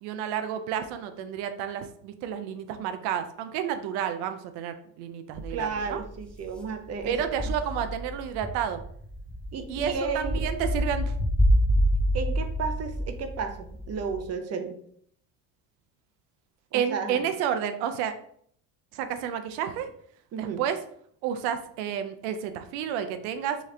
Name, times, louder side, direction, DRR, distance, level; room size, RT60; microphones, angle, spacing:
voice 1, 0.0-6.0 7.1-8.8 9.7-11.2 16.7-18.1 18.9-19.9 20.4-20.8 21.2-23.7, right 9 dB, 85° right, 9 dB, 0.6 m, -31 dB
sound 1, 5.4-14.3, equal, 5° left, 0.4 m, -27 dB
voice 2, 5.5-7.5 9.5-10.4 12.1-14.8 16.7-17.2 20.3-20.6, right 5 dB, 40° right, 7 dB, 0.6 m, -33 dB
3.2 x 3.1 x 3.7 m, 0.64 s
supercardioid pair, 105°, 38 cm